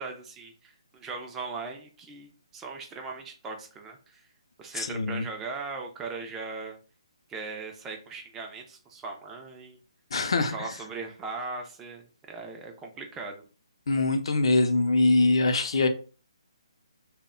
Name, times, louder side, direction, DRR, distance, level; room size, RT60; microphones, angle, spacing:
voice 1, 0.0-4.2 4.6-6.8 7.3-9.8 10.4-13.4, right 4 dB, 10° right, 0.3 m, -39 dB
voice 2, 4.8-5.3 10.1-10.7 13.9-15.9, left 2 dB, 65° left, 0.4 m, -23 dB
2.1 x 2.0 x 3.6 m
hypercardioid pair, 165°, 3 cm